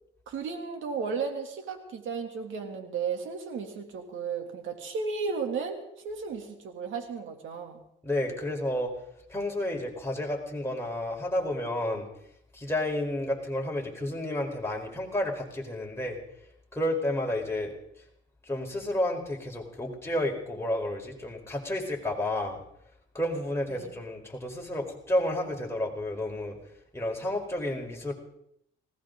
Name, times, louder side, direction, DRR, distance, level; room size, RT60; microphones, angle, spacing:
voice 1, 0.3-7.8 23.7-23.9, right 5 dB, 80° right, 4 dB, 3.0 m, -34 dB
voice 2, 8.0-8.9 9.3-12.1 12.5-16.2 16.7-17.7 18.4-22.6 23.1-26.6 26.9-28.1, left 1 dB, 10° left, 0 dB, 4.6 m, -31 dB
20.0 x 18.0 x 4.0 m, 0.73 s
cardioid pair, 90°, 20 cm